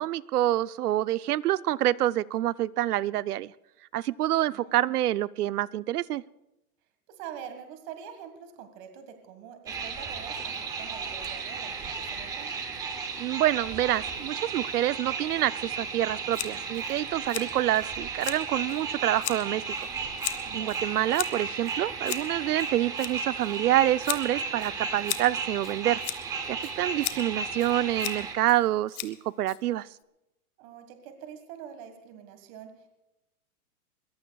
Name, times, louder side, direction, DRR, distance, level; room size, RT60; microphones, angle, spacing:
voice 1, 0.0-3.5 3.9-6.2 13.2-19.6 20.5-26.0 26.5-29.9, right 14 dB, 90° right, 17 dB, 0.7 m, -27 dB
voice 2, 4.5-4.8 7.1-12.5 20.5-20.7 30.6-32.9, right 8 dB, 35° right, 7 dB, 1.6 m, -45 dB
sound 1, 9.7-28.3, right 5 dB, 10° right, 0.6 m, -34 dB
Scissors, 16.3-30.0, left 15 dB, 40° left, 1.1 m, -39 dB
22.0 x 21.5 x 2.3 m, 0.93 s
hypercardioid pair, 160°, 44 cm